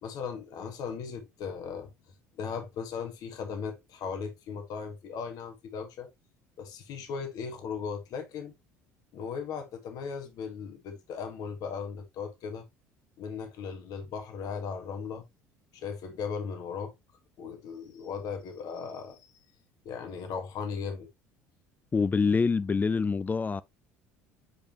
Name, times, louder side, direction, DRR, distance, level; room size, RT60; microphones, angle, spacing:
voice 1, 0.0-1.9 2.3-6.1 6.6-8.5 9.1-12.6 13.2-15.2 15.7-16.9 17.4-19.3 19.8-21.1, left 6 dB, 55° left, 1.6 m, -37 dB
voice 2, 21.9-23.6, left 5 dB, 20° left, 0.4 m, -25 dB
8.1 x 5.1 x 2.9 m
figure-of-eight pair, 60°, 8 cm